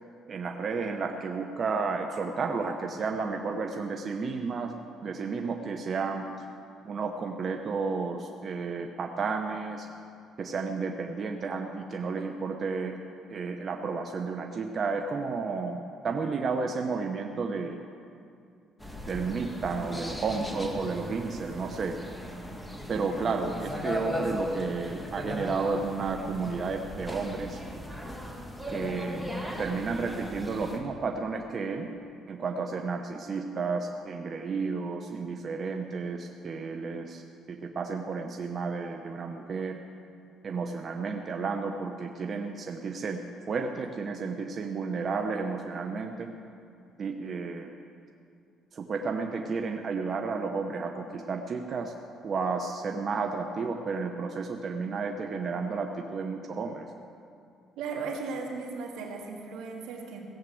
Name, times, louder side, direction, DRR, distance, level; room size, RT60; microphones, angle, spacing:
voice 1, 0.3-4.7 5.0-6.2 6.8-9.9 10.4-13.0 13.3-17.8 19.0-22.0 22.9-27.6 28.7-29.2 29.6-31.9 32.3-37.2 37.5-39.8 40.4-43.2 43.5-46.3 47.0-47.7 48.7-51.9 52.2-56.9, right 4 dB, 45° right, 4 dB, 0.9 m, -32 dB
sound 1, 18.8-30.8, equal, 5° left, 1.8 m, -37 dB
voice 2, 57.8-60.2, right 4 dB, 85° right, 0 dB, 2.2 m, -36 dB
17.0 x 7.4 x 7.8 m, 2.4 s
cardioid pair, 100°, 0 cm